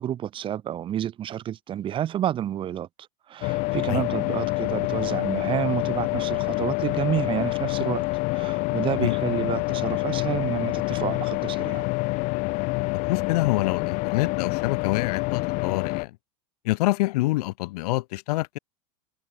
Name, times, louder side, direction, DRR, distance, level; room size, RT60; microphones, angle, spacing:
voice 1, 0.0-2.9 3.3-8.0 8.3-11.9, right 11 dB, 25° right, 1.2 m, -29 dB
sound 1, 3.4-16.0, left 25 dB, 40° left, 0.6 m, -27 dB
voice 2, 13.1-16.1 16.6-18.6, left 19 dB, 70° left, 1.1 m, -26 dB
open air
supercardioid pair, 155°, 21 cm